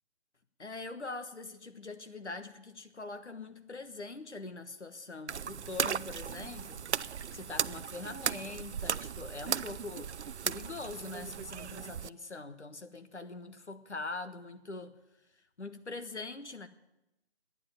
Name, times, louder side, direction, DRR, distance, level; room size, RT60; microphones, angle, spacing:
voice 1, 0.6-10.1 10.4-15.0 15.6-16.7, left 3 dB, 85° left, 1.4 m, -43 dB
sound 1, 5.3-12.1, right 7 dB, 85° right, 0.5 m, -36 dB
12.0 x 10.0 x 9.1 m
figure-of-eight pair, 150°, 34 cm